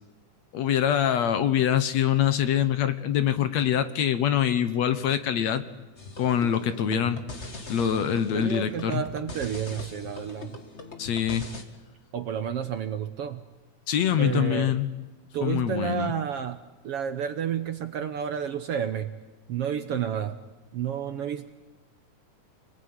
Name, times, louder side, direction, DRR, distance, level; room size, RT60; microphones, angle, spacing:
voice 1, 0.5-5.6 6.2-7.2 7.7-9.0 11.0-11.5 13.9-14.9 15.4-16.1, left 9 dB, 65° left, 11 dB, 2.3 m, -24 dB
sound 1, 6.0-11.6, left 2 dB, 25° left, 1.9 m, -41 dB
voice 2, 6.6-7.1 8.3-10.6 12.1-13.4 14.2-14.8 15.3-19.1 19.5-20.4 20.7-21.5, right 9 dB, 60° right, 10 dB, 1.7 m, -31 dB
29.0 x 21.0 x 9.7 m, 1.1 s
omnidirectional pair, 3.6 m